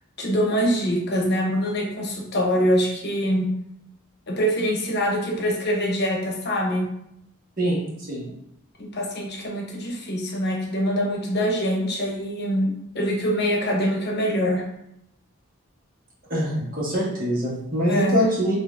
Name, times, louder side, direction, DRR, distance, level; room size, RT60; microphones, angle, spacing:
voice 1, 0.2-3.5 4.3-6.9 8.8-14.6 17.9-18.2, equal, 55° left, -1 dB, 0.9 m, -24 dB
voice 2, 16.3-18.6, equal, 45° right, -6 dB, 1.4 m, -24 dB
6.2 x 2.7 x 2.4 m, 0.79 s
head